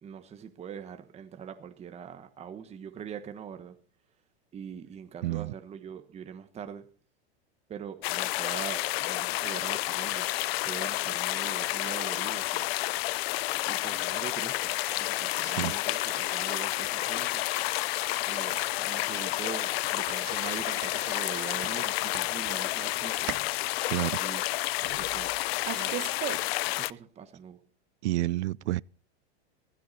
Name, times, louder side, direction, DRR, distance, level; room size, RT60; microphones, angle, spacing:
voice 1, 0.0-3.8 4.5-6.9 7.7-10.3 10.6-12.7 13.7-17.4 18.3-23.3 24.2-24.4 25.0-26.1 26.6-27.6, right 7 dB, 20° right, 1.3 m, -43 dB
voice 2, 5.2-5.5 15.4-15.7 23.9-24.2 28.0-28.8, right 16 dB, 85° right, 0.6 m, -29 dB
sound 1, 8.0-26.9, left 19 dB, 65° left, 0.6 m, -30 dB
sound 2, 14.7-22.1, left 5 dB, 25° left, 2.4 m, -44 dB
sound 3, 19.6-26.8, right 16 dB, 45° right, 1.2 m, -41 dB
16.0 x 15.5 x 4.2 m
supercardioid pair, 140°, 33 cm